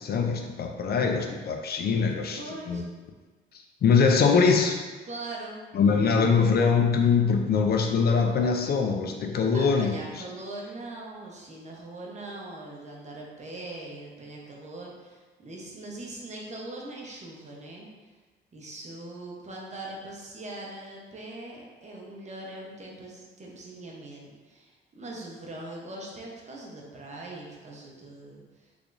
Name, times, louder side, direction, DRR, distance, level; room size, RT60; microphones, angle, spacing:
voice 1, 0.0-2.4 2.7-2.8 3.8-4.8 5.7-10.2, left 5 dB, 50° left, 3 dB, 0.4 m, -23 dB
voice 2, 2.3-2.8 5.0-5.6 9.5-17.9 18.5-28.7, right 2 dB, 35° right, -2 dB, 0.9 m, -41 dB
3.5 x 3.4 x 2.5 m, 1.3 s
cardioid pair, 90°, 20 cm